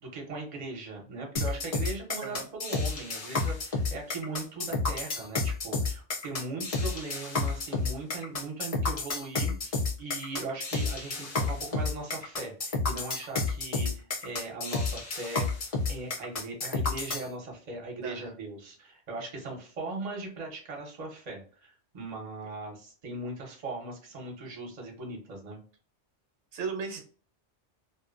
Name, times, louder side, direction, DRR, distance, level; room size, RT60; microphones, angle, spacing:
voice 1, 0.0-15.5 15.9-25.6, right 3 dB, 40° right, 0 dB, 0.8 m, -39 dB
sound 1, 1.4-17.3, left 3 dB, 45° left, 0.5 m, -30 dB
voice 2, 18.0-18.3 26.5-27.0, right 5 dB, 75° right, 3 dB, 1.0 m, -35 dB
2.6 x 2.1 x 2.4 m, 0.41 s
omnidirectional pair, 1.2 m